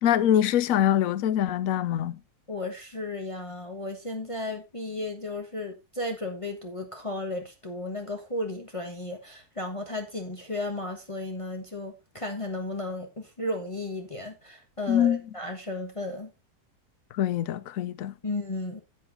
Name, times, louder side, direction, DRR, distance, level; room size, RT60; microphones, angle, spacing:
voice 1, 0.0-2.2 14.9-15.2 17.1-18.1, left 10 dB, 65° left, 1.1 m, -24 dB
voice 2, 2.5-16.3 18.2-18.8, left 2 dB, 20° left, 1.3 m, -34 dB
9.7 x 8.3 x 3.7 m
omnidirectional pair, 1.6 m